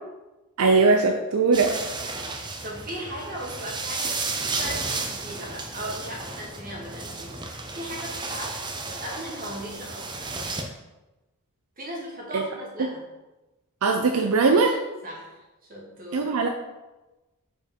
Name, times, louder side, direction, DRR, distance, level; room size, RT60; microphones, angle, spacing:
voice 1, 0.6-1.8 12.3-12.4 12.8-12.9 13.8-14.8 16.1-16.5, right 4 dB, 75° right, 4 dB, 0.5 m, -20 dB
sound 1, 1.5-10.6, right 3 dB, 20° right, 0.6 m, -33 dB
voice 2, 1.8-8.6 9.0-10.3 11.8-13.1 15.0-15.4 15.7-16.4, right 1 dB, 40° right, -3 dB, 1.8 m, -38 dB
5.0 x 4.6 x 5.2 m, 1.1 s
head